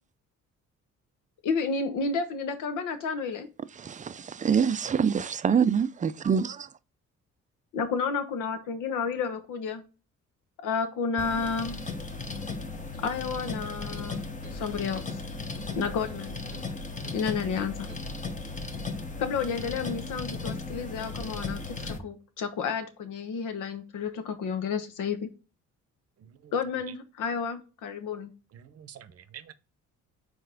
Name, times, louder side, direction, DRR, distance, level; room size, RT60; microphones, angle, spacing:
voice 1, 1.4-3.5 7.7-9.8 10.6-11.8 13.0-14.2 14.5-15.2 15.8-16.4 17.1-17.9 19.2-25.3 26.5-28.3, left 5 dB, 85° left, 1.1 m, -31 dB
voice 2, 3.7-6.7, right 7 dB, 25° right, 0.4 m, -25 dB
sound 1, 11.2-22.0, left 3 dB, 25° left, 0.9 m, -36 dB
sound 2, 12.9-13.1 13.4-14.2 14.4-14.7 15.0-15.2 15.6-16.7 17.1-17.2 17.6-18.1, left 2 dB, 50° left, 1.9 m, -47 dB
voice 3, 26.2-26.5 28.5-29.5, right 9 dB, 55° right, 0.7 m, -48 dB
4.7 x 4.2 x 4.9 m
cardioid pair, 90°, 30 cm